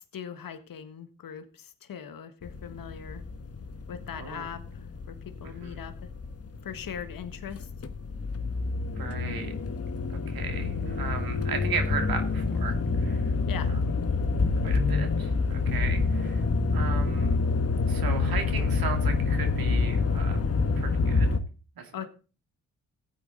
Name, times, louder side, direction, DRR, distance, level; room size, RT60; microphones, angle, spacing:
voice 1, 0.0-3.2 3.9-6.1 6.6-7.7 13.5-13.7 21.9-22.0, left 8 dB, 65° left, 10 dB, 1.6 m, -40 dB
sound 1, 2.4-21.4, left 4 dB, 40° left, 1.3 m, -27 dB
voice 2, 4.1-4.4 5.4-5.8 9.0-9.6 10.1-13.3 14.6-17.4 17.9-20.4 20.8-21.3 21.8-21.9, right 5 dB, 70° right, 5 dB, 2.5 m, -36 dB
15.0 x 8.6 x 3.9 m, 0.35 s
supercardioid pair, 55°, 37 cm